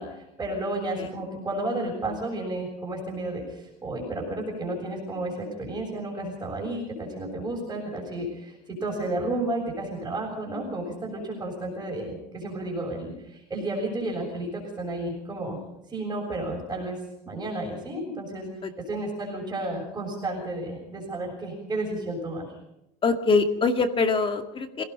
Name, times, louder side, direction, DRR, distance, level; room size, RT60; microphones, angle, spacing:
voice 1, 0.0-15.6 15.9-17.0 17.3-18.5 18.9-22.5, right 1 dB, 15° right, -2 dB, 6.9 m, -32 dB
voice 2, 23.0-24.8, left 4 dB, 25° left, 6 dB, 2.1 m, -23 dB
27.5 x 17.5 x 5.5 m, 0.88 s
supercardioid pair, 130°, 21 cm